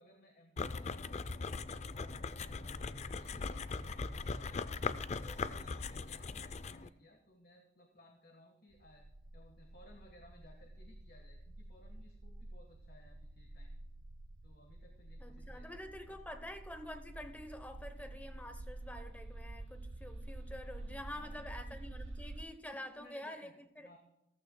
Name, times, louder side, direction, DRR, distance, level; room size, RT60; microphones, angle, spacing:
voice 1, 0.0-4.8 5.1-9.1 9.3-13.7 14.4-15.8 16.1-16.2 20.8-22.0 22.7-24.0, left 1 dB, 55° left, 1.3 m, -61 dB
sound 1, 0.6-6.9, left 4 dB, 35° left, 0.4 m, -40 dB
sound 2, 8.7-22.4, right 2 dB, 90° right, 0.7 m, -49 dB
voice 2, 15.2-23.9, left 1 dB, 10° left, 0.8 m, -47 dB
14.5 x 14.5 x 2.2 m
head